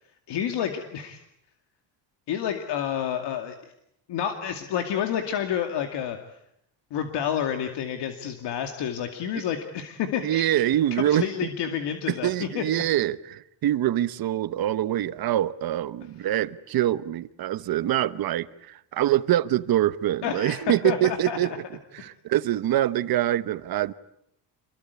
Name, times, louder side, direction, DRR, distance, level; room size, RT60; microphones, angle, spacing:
voice 1, 0.3-1.2 2.3-3.5 4.1-6.2 6.9-10.4 10.9-12.6 20.2-21.4, left 9 dB, 65° left, 2.4 m, -29 dB
voice 2, 10.2-11.3 12.1-21.6 21.9-23.9, right 13 dB, 50° right, 1.1 m, -25 dB
28.0 x 22.5 x 8.3 m
cardioid pair, 155°, 45 cm